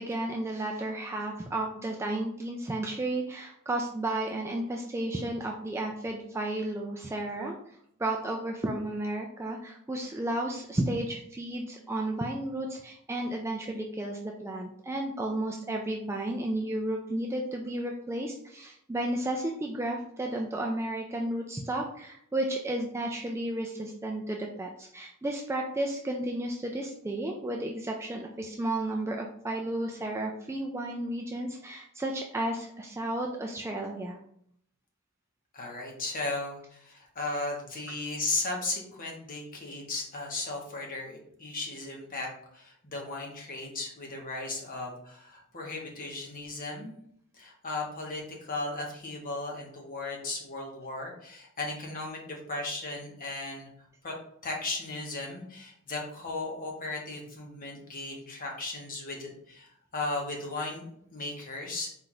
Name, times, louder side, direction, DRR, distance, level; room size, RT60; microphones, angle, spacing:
voice 1, 0.0-34.2, right 1 dB, 10° right, 1 dB, 0.3 m, -33 dB
voice 2, 35.5-42.3 42.5-46.9 47.3-53.7 54.0-54.1 54.4-60.9 61.1-61.9, left 2 dB, 40° left, 0 dB, 1.0 m, -36 dB
4.3 x 2.5 x 3.9 m, 0.68 s
head